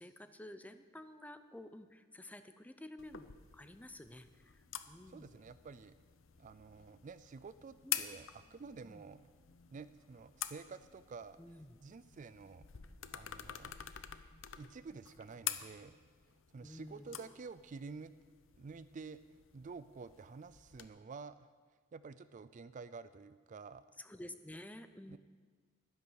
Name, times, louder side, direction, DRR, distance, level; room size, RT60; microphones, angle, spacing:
voice 1, 0.0-5.4 7.8-8.0 8.8-9.0 11.4-11.8 16.6-17.3 24.0-25.2, left 1 dB, 10° left, 10 dB, 0.6 m, -52 dB
sound 1, 0.9-17.0, left 1 dB, 45° left, 2.3 m, -75 dB
sound 2, 3.0-20.9, left 11 dB, 90° left, 0.7 m, -48 dB
voice 2, 5.1-5.9 6.4-9.3 9.7-11.4 11.8-12.6 13.1-13.8 14.6-16.0 16.5-18.1 18.6-19.2 19.5-21.5 21.9-24.0 25.1-25.2, right 4 dB, 40° right, 14 dB, 0.4 m, -50 dB
12.0 x 10.5 x 6.4 m, 1.5 s
head